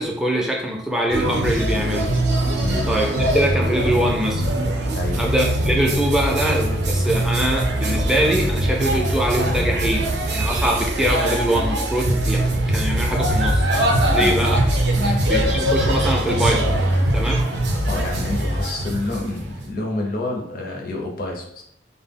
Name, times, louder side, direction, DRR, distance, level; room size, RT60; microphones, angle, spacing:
voice 1, 0.0-2.1 2.9-4.5 5.1-13.6 14.1-14.6 15.3-16.8 17.1-17.5, right 1 dB, 5° right, -1 dB, 0.3 m, -23 dB
sound 1, 1.1-19.6, right 1 dB, 65° right, 0.4 m, -22 dB
voice 2, 2.6-2.9 4.9-5.2 14.2-14.4 15.0-15.2 17.9-21.6, left 2 dB, 50° left, 0 dB, 0.5 m, -28 dB
2.2 x 2.0 x 3.4 m, 0.71 s
head